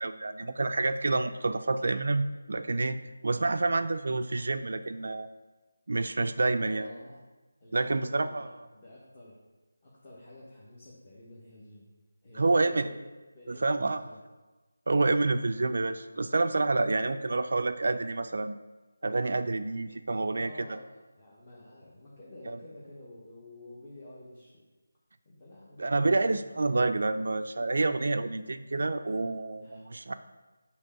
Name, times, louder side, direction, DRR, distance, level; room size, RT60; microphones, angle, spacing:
voice 1, 0.0-3.0 3.2-5.3 5.9-6.9 7.7-8.5 12.4-12.9 13.5-14.0 14.9-18.6 19.0-20.8 22.5-22.6 25.8-30.1, right 3 dB, 60° right, 10 dB, 0.3 m, -28 dB
voice 2, 6.5-7.2 7.6-9.4 9.8-11.9 12.2-13.0 13.3-14.2 20.3-24.6 25.2-26.5 29.6-29.8, left 1 dB, 25° left, -7 dB, 1.0 m, -50 dB
6.3 x 3.0 x 5.6 m, 1.2 s
figure-of-eight pair, 175°, 0 cm